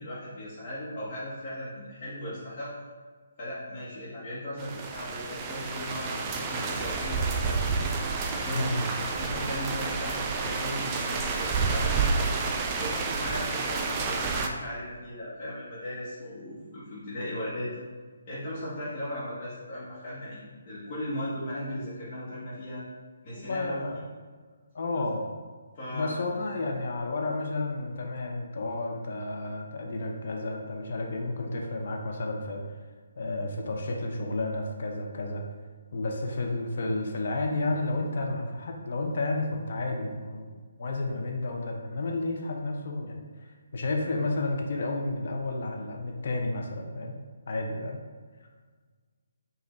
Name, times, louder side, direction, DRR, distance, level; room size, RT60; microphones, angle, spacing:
voice 1, 0.0-2.7 3.4-7.8 8.4-12.3 12.8-17.8 18.3-22.8 23.2-23.9 24.9-25.0 25.7-26.2 26.8-26.9, left 1 dB, 35° left, -11 dB, 1.2 m, -37 dB
sound 1, 4.6-14.5, right 4 dB, 25° right, 0.4 m, -30 dB
voice 2, 23.4-24.1 24.7-25.3 25.9-32.6 33.2-35.4 35.9-43.3 43.7-47.1 47.5-48.0, left 2 dB, 55° left, 1 dB, 0.7 m, -31 dB
5.2 x 2.6 x 3.3 m, 1.5 s
figure-of-eight pair, 150°, 0 cm